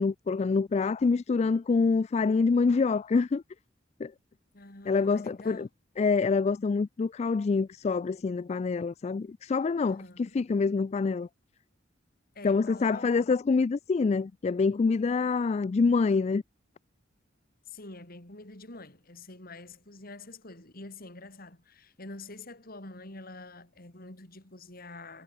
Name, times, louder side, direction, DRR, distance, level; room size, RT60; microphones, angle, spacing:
voice 1, 0.0-3.4 4.0-4.1 4.9-5.7 6.0-10.0 10.3-11.3 12.4-16.4, left 4 dB, 35° left, 0.3 m, -26 dB
voice 2, 4.5-5.7 9.9-10.4 12.3-13.1 17.7-25.2, left 2 dB, 50° left, 4.1 m, -46 dB
head